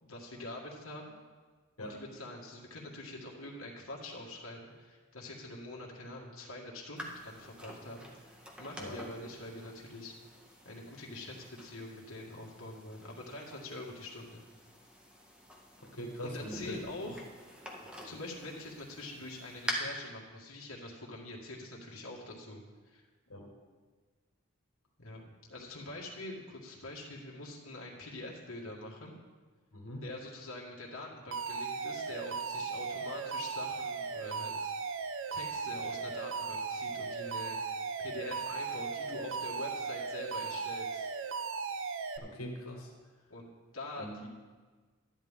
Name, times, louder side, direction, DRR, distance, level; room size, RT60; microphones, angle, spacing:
voice 1, 0.0-1.2 1.8-10.1 10.6-14.5 16.2-17.3 18.0-23.0 25.0-25.2 25.5-29.1 30.0-34.7 35.3-37.6 38.0-41.1 43.3-43.5 43.7-44.3, left 2 dB, 70° left, -3 dB, 1.9 m, -45 dB
sound 1, 7.0-19.7, equal, 5° right, 1.3 m, -47 dB
voice 2, 15.8-16.8 17.0-17.1 23.3-23.5 29.7-30.0 42.2-42.9 44.0-44.2, equal, 90° left, -1 dB, 1.7 m, -42 dB
Alarm, 31.3-42.2, right 5 dB, 65° right, 0.7 m, -37 dB
12.5 x 10.5 x 3.7 m, 1.4 s
head